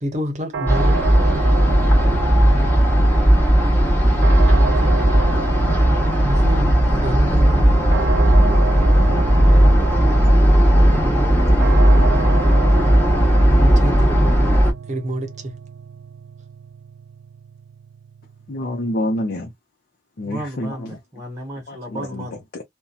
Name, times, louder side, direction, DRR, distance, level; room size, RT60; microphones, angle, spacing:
voice 1, 0.0-1.0 6.2-7.8 13.6-14.6 14.9-15.5, equal, 45° right, 0.8 m, -27 dB
sound 1, 0.5-19.4, right 5 dB, 80° right, 0.3 m, -31 dB
sound 2, 0.7-14.7, equal, 10° left, 1.0 m, -15 dB
voice 2, 4.5-5.8 10.9-12.5 20.2-22.4, right 1 dB, 20° right, 0.9 m, -36 dB
voice 3, 18.5-19.5 20.2-21.0 21.7-22.6, left 1 dB, 55° left, 0.6 m, -27 dB
2.6 x 2.2 x 2.3 m
head